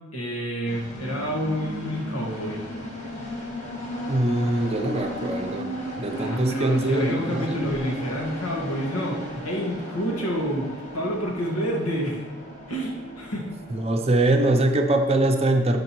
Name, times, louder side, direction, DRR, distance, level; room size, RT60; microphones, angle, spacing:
voice 1, 0.1-2.6 6.2-12.2 12.7-13.5, equal, 85° left, -2 dB, 1.8 m, -28 dB
sound 1, 0.7-14.5, equal, 35° left, 1.4 m, -35 dB
voice 2, 4.1-5.7 6.0-7.6 13.7-15.8, right 1 dB, 30° right, 4 dB, 0.6 m, -23 dB
11.5 x 5.2 x 3.1 m, 1.1 s
head